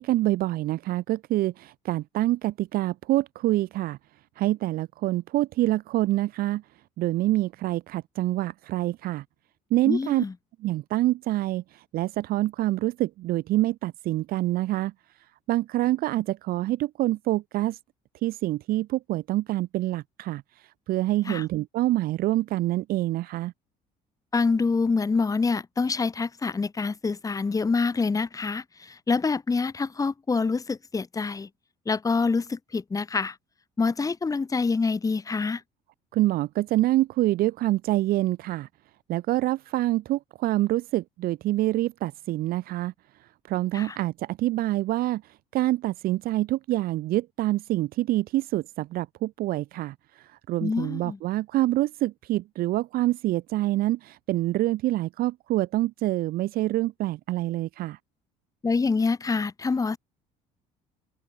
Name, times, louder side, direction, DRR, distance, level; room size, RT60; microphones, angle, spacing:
voice 1, 0.0-4.0 4.4-6.6 7.0-9.2 9.7-10.2 10.6-14.9 15.5-17.8 18.2-23.5 36.1-38.7 39.1-42.9 43.2-58.0, right 16 dB, 65° right, 0.9 m, -26 dB
voice 2, 9.9-10.3 21.3-21.5 24.3-31.5 31.9-33.4 33.8-35.6 43.7-44.0 50.6-51.2 58.6-60.0, left 4 dB, 20° left, 1.8 m, -26 dB
open air
supercardioid pair, 95°, 16 cm